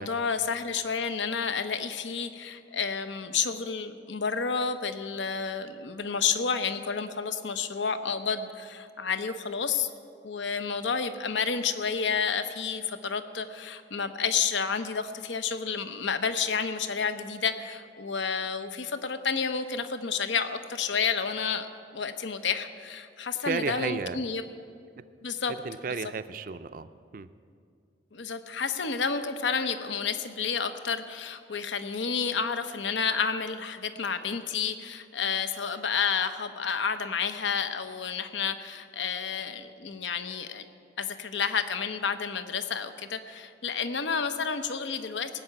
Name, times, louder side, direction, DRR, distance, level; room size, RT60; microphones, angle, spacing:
voice 1, 0.0-9.9 10.2-21.7 21.9-24.4 25.2-25.5 28.1-40.6 41.0-45.4, left 6 dB, 85° left, 10 dB, 0.8 m, -30 dB
voice 2, 23.4-24.2 25.0-25.1 25.6-27.3, right 5 dB, 50° right, 13 dB, 0.4 m, -33 dB
17.5 x 6.7 x 8.7 m, 2.3 s
head